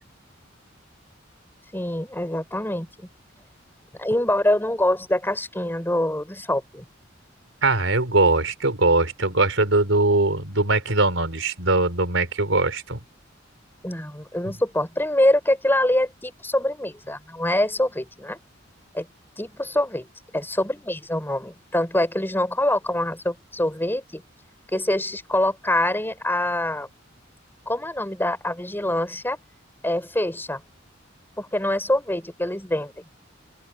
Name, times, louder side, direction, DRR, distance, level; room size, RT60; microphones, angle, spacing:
voice 1, 1.7-3.1 4.0-6.8 13.8-18.4 18.9-19.1 19.4-20.1 20.3-24.2 24.7-26.9 27.7-29.4 29.8-30.6 31.4-33.0, left 1 dB, 10° left, 5.7 m, -24 dB
voice 2, 7.6-13.0, right 2 dB, 85° right, 3.9 m, -21 dB
open air
head